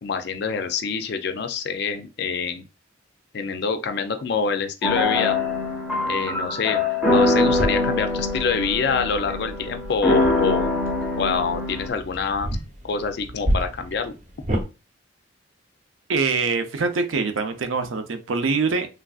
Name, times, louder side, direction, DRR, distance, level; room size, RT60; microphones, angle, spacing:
voice 1, 0.0-2.6 3.3-5.4 6.1-6.8 7.1-10.7 11.2-12.6 12.8-14.1, left 5 dB, 55° left, 8 dB, 0.4 m, -26 dB
sound 1, 4.8-11.9, left 2 dB, 5° right, 0.5 m, -23 dB
sound 2, 7.5-14.6, equal, 40° right, 0.7 m, -31 dB
voice 2, 16.1-18.9, right 4 dB, 85° right, 8 dB, 0.5 m, -24 dB
3.3 x 2.4 x 2.3 m, 0.30 s
head